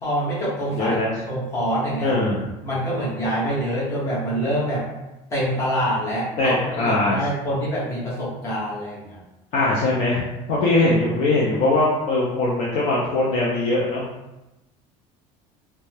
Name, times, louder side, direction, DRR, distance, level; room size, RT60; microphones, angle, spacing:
voice 1, 0.0-1.0 1.3-2.2 2.6-4.8 5.3-9.2, equal, 20° left, -8 dB, 1.0 m, -25 dB
voice 2, 0.7-1.1 2.0-2.4 6.4-7.2 9.5-14.0, left 2 dB, 45° left, -5 dB, 0.5 m, -21 dB
2.7 x 2.2 x 3.2 m, 0.99 s
cardioid pair, 175°, 15 cm